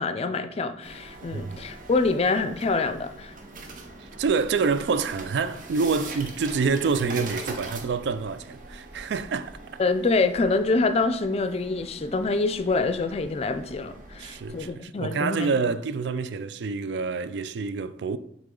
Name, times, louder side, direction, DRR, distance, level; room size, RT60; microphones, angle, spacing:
voice 1, 0.0-3.3 9.8-15.5, left 3 dB, 35° left, 0.4 m, -26 dB
sound 1, 0.8-14.7, right 2 dB, 50° right, 0.9 m, -42 dB
voice 2, 4.0-9.5 14.2-18.2, right 4 dB, 70° right, 0.4 m, -27 dB
6.6 x 3.9 x 3.7 m
head